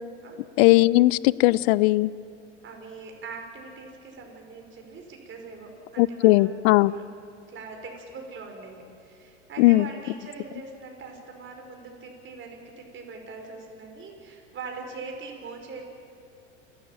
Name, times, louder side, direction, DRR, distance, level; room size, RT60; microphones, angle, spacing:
voice 1, 0.6-2.1 6.0-6.9 9.6-9.9, left 19 dB, 60° left, 21 dB, 0.7 m, -18 dB
voice 2, 2.6-7.0 7.5-15.8, right 4 dB, 35° right, 2 dB, 5.3 m, -42 dB
28.5 x 13.0 x 9.0 m, 2.4 s
hypercardioid pair, 95°, 36 cm